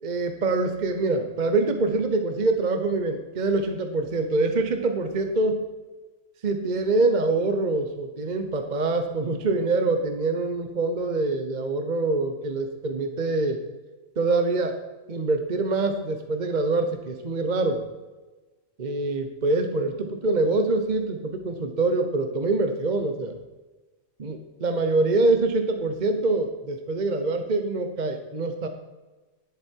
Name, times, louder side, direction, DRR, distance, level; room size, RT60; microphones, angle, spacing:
voice 1, 0.0-5.6 6.4-13.6 14.2-14.8 15.1-17.9 18.8-23.4 24.2-28.7, right 3 dB, 40° right, 6 dB, 1.0 m, -25 dB
11.0 x 11.0 x 4.6 m, 1.2 s
omnidirectional pair, 1.3 m